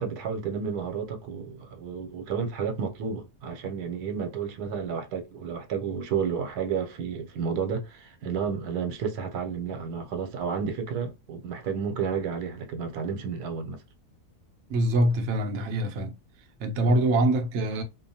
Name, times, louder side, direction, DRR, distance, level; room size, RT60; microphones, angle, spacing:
voice 1, 0.0-13.8 16.9-17.0, right 6 dB, 80° right, 1.2 m, -31 dB
voice 2, 14.7-16.1 16.6-17.8, right 1 dB, 65° right, 0.8 m, -24 dB
2.7 x 2.1 x 2.7 m
omnidirectional pair, 1.6 m